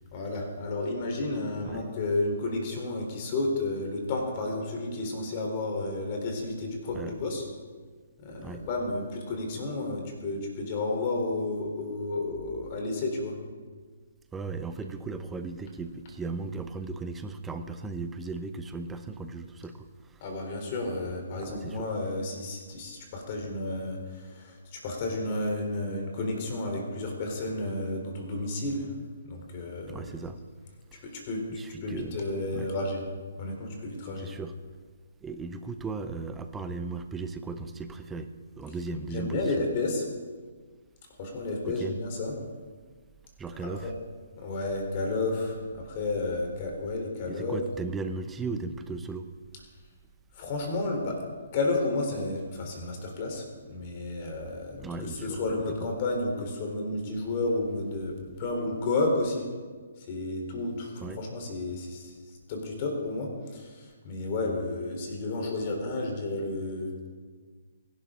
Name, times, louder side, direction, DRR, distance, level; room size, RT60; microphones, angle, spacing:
voice 1, 0.1-7.4 8.2-13.4 20.2-28.9 29.2-30.1 31.0-33.0 33.4-34.3 39.1-40.0 41.2-42.3 43.8-43.9 44.4-47.6 50.3-51.1 51.5-59.5 60.0-66.9, left 2 dB, 35° left, 2 dB, 3.8 m, -32 dB
voice 2, 14.3-20.2 21.4-21.9 29.9-30.4 30.9-31.0 31.5-32.2 32.5-32.7 34.2-34.5 35.2-38.3 38.6-39.5 41.6-41.9 43.4-43.9 47.3-49.3 54.8-55.4 61.0-61.2, right 4 dB, 10° right, 9 dB, 0.8 m, -36 dB
23.5 x 11.5 x 3.8 m, 1.5 s
figure-of-eight pair, 130°, 0 cm